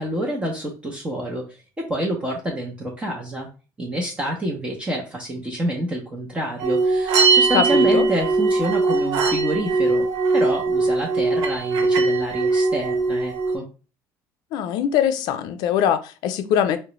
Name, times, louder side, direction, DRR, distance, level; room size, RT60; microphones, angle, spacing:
voice 1, 0.0-3.5 3.8-10.1 10.3-13.7, right 1 dB, 15° right, -1 dB, 0.6 m, -28 dB
sound 1, 6.6-13.6, right 3 dB, 65° right, 0.6 m, -20 dB
voice 2, 7.5-8.0 14.5-16.8, left 9 dB, 70° left, 11 dB, 0.4 m, -22 dB
3.6 x 2.1 x 3.0 m, 0.34 s
cardioid pair, 140°, 7 cm